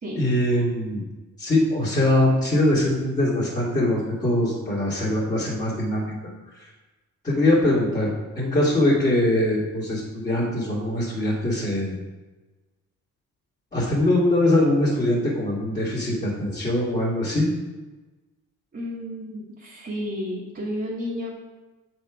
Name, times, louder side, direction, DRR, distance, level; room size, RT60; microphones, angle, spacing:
voice 1, 0.2-1.0 1.4-6.1 7.2-11.9 13.7-17.5, left 1 dB, 25° left, -8 dB, 2.1 m, -22 dB
voice 2, 18.7-21.4, equal, 35° right, -7 dB, 1.7 m, -32 dB
7.3 x 4.5 x 4.9 m, 1.2 s
cardioid pair, 90°, 30 cm